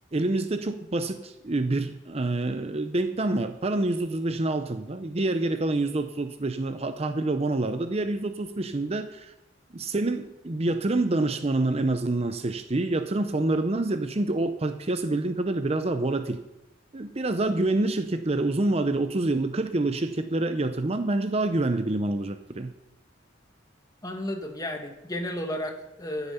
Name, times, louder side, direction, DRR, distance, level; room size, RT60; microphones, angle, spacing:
voice 1, 0.1-9.3 9.7-16.4 16.9-22.7, right 2 dB, 35° right, 9 dB, 0.6 m, -27 dB
voice 2, 24.0-26.3, left 1 dB, 20° left, 4 dB, 1.6 m, -33 dB
15.0 x 8.1 x 5.7 m, 0.94 s
head